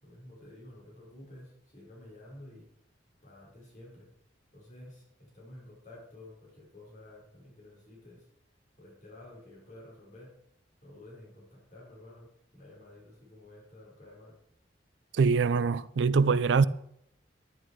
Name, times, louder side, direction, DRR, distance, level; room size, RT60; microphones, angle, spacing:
voice 1, 0.0-2.7 3.2-4.1 4.5-8.3 8.8-10.3 10.8-14.3, left 1 dB, 45° left, 4.7 m, -51 dB
voice 2, 15.1-16.6, right 5 dB, 65° right, 0.4 m, -23 dB
11.0 x 10.5 x 4.6 m
head